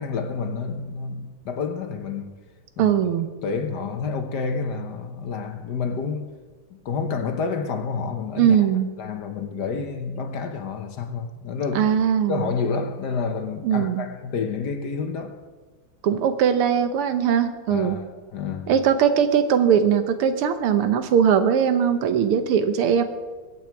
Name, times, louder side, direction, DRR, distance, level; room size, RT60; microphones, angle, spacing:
voice 1, 0.0-2.3 2.8-3.0 3.4-6.3 6.8-8.7 9.0-11.9 12.3-15.4 17.7-18.0 18.3-18.7, left 5 dB, 55° left, 1.4 m, -29 dB
voice 2, 2.8-3.3 8.4-8.9 11.8-12.5 13.6-14.1 16.0-18.0 18.7-23.0, right 8 dB, 90° right, 1.9 m, -20 dB
21.5 x 8.6 x 4.6 m
omnidirectional pair, 2.4 m